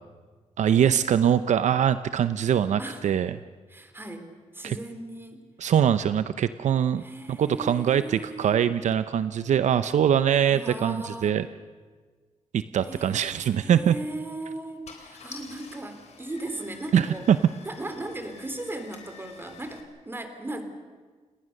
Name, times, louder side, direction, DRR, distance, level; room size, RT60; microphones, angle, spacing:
voice 1, 0.6-3.3 4.6-4.8 5.6-11.5 12.5-13.9 16.9-17.4, right 9 dB, 70° right, 12 dB, 0.7 m, -23 dB
voice 2, 2.8-3.1 3.7-4.3 4.5-5.5 7.0-8.6 10.5-11.4 12.8-17.3 17.6-20.6, right 2 dB, 15° right, 7 dB, 3.4 m, -37 dB
Car / Engine starting, 13.7-14.0 14.6-14.7 14.8-19.8, left 5 dB, 60° left, 3.7 m, -48 dB
30.0 x 19.0 x 6.6 m, 1.5 s
cardioid pair, 110°, 13 cm